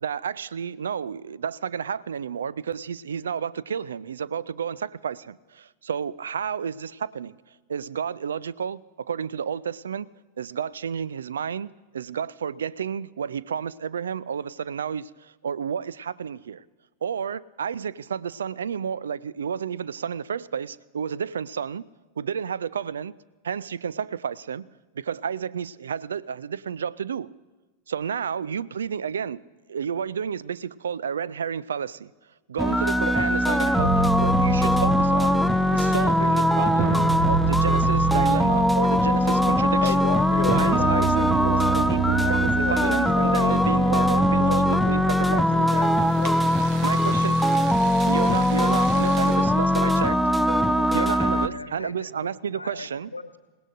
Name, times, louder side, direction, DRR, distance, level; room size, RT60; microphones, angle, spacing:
voice 1, 0.0-7.4 7.7-10.1 10.4-16.6 17.0-21.9 22.2-23.1 23.4-24.7 24.9-27.3 27.9-29.4 29.7-32.1 32.5-40.1 40.5-45.5 46.8-47.4 47.8-50.2 50.9-53.1, right 7 dB, 65° right, 0.4 m, -31 dB
sound 1, 32.6-51.5, left 1 dB, ahead, 0.5 m, -21 dB
sound 2, 33.8-49.4, right 7 dB, 40° right, 1.1 m, -31 dB
voice 2, 39.8-44.6 45.3-46.7, left 13 dB, 55° left, 0.4 m, -34 dB
voice 3, 49.8-53.4, left 3 dB, 80° left, 0.8 m, -40 dB
27.5 x 17.5 x 2.6 m
figure-of-eight pair, 90°, 0 cm